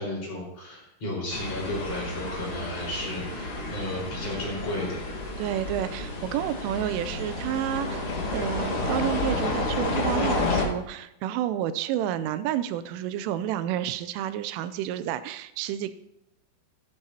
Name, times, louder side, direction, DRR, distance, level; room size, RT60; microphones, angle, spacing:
voice 1, 0.0-5.0, left 1 dB, 35° left, -5 dB, 5.5 m, -33 dB
sound 1, 1.3-10.7, left 2 dB, 85° left, 1.2 m, -30 dB
voice 2, 5.4-15.9, right 11 dB, 90° right, 13 dB, 3.2 m, -30 dB
15.5 x 13.5 x 2.9 m, 0.85 s
omnidirectional pair, 5.6 m